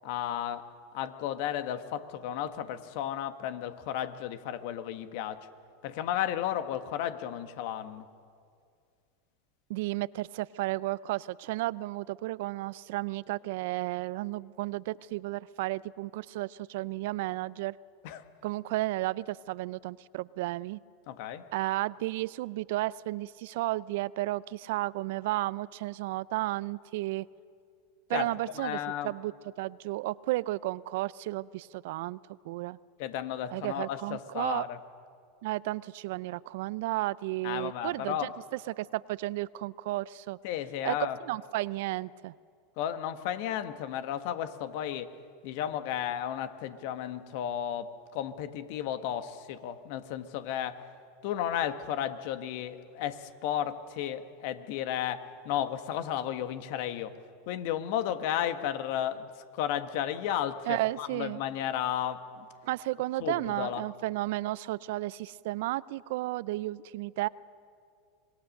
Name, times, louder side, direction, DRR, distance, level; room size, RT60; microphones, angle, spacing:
voice 1, 0.0-5.5 5.8-8.0 18.0-18.2 21.1-21.5 28.1-29.1 33.0-34.8 37.4-38.3 40.4-41.2 42.8-45.1 45.4-50.8 51.2-57.2 57.5-62.5 63.2-63.9, left 10 dB, 60° left, 10 dB, 1.5 m, -33 dB
voice 2, 9.7-17.8 18.4-20.8 21.5-27.3 28.1-29.3 29.6-32.2 32.4-32.8 33.5-34.7 35.4-38.3 38.7-40.4 40.8-41.0 41.2-42.3 60.7-61.4 62.6-67.3, right 18 dB, 65° right, 20 dB, 0.5 m, -33 dB
25.5 x 20.5 x 6.6 m, 2.3 s
hypercardioid pair, 95°, 0 cm